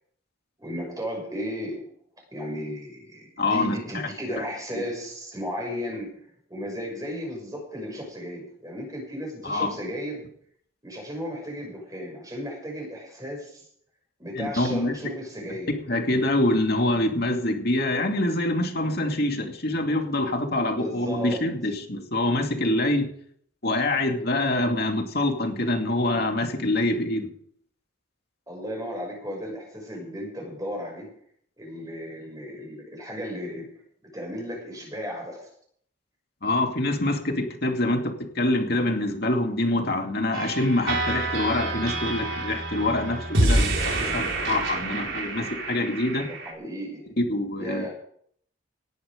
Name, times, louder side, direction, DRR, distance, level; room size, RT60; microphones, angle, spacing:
voice 1, 0.6-1.9 2.3-10.3 10.8-13.7 14.2-15.7 20.7-21.4 28.5-31.1 31.6-33.7 34.1-35.5 46.3-47.1 47.6-47.9, equal, 15° right, 1 dB, 6.5 m, -35 dB
voice 2, 3.4-3.8 4.7-4.8 9.4-9.7 14.4-14.9 15.7-23.1 23.6-27.3 36.4-46.3 47.3-47.8, left 1 dB, 50° left, 3 dB, 2.5 m, -25 dB
sound 1, 40.3-46.5, right 2 dB, 70° right, 4.1 m, -27 dB
18.5 x 11.0 x 5.2 m, 0.63 s
head